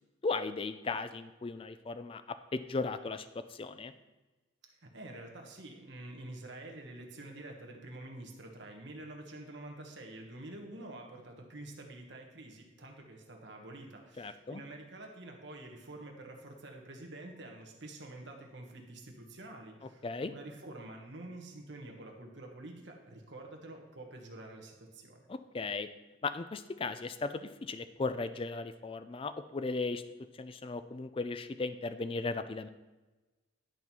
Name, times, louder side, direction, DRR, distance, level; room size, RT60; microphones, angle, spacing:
voice 1, 0.2-3.9 14.2-14.6 20.0-20.3 25.3-25.9 26.2-30.0 30.4-32.7, left 3 dB, 25° left, 11 dB, 0.3 m, -36 dB
voice 2, 4.7-25.2, right 2 dB, 55° right, 2 dB, 1.3 m, -48 dB
10.5 x 4.6 x 5.4 m, 1.2 s
head